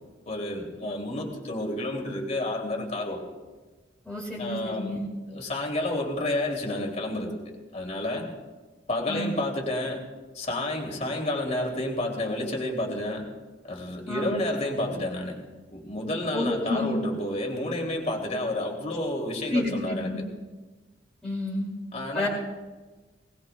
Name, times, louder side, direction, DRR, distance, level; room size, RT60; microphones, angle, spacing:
voice 1, 0.3-3.2 4.4-5.0 5.3-7.3 7.7-8.3 8.9-10.0 10.3-13.3 13.6-15.4 15.7-20.3 21.9-22.3, left 1 dB, 35° left, 0 dB, 2.7 m, -30 dB
voice 2, 4.0-5.1 9.1-9.3 14.1-14.4 16.3-17.0 19.5-20.2 21.2-21.7 22.1-22.3, left 1 dB, 5° left, -8 dB, 2.5 m, -30 dB
21.5 x 19.0 x 2.3 m, 1.3 s
head